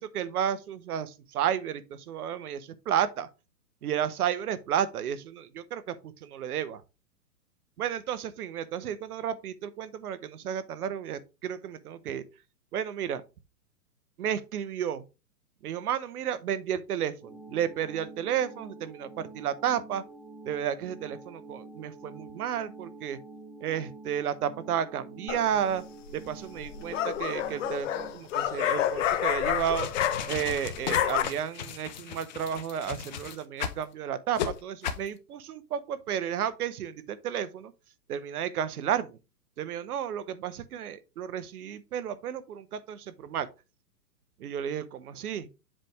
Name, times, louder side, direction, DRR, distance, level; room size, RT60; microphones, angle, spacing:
voice 1, 0.0-3.3 3.8-6.8 7.8-12.2 12.7-13.2 14.2-15.0 15.6-20.0 20.4-23.2 23.6-25.8 26.1-29.9 30.3-37.7 38.1-39.2 39.6-43.5 44.4-45.5, right 9 dB, 65° right, 1.0 m, -32 dB
sound 1, 17.2-28.1, right 2 dB, ahead, 1.1 m, -47 dB
sound 2, 25.3-25.7 26.6-30.5 30.8-31.2, left 10 dB, 50° left, 1.0 m, -28 dB
sound 3, 29.5-33.8 34.3-34.5 34.8-35.1, left 8 dB, 30° left, 0.5 m, -36 dB
7.5 x 3.3 x 4.7 m
hypercardioid pair, 150°, 48 cm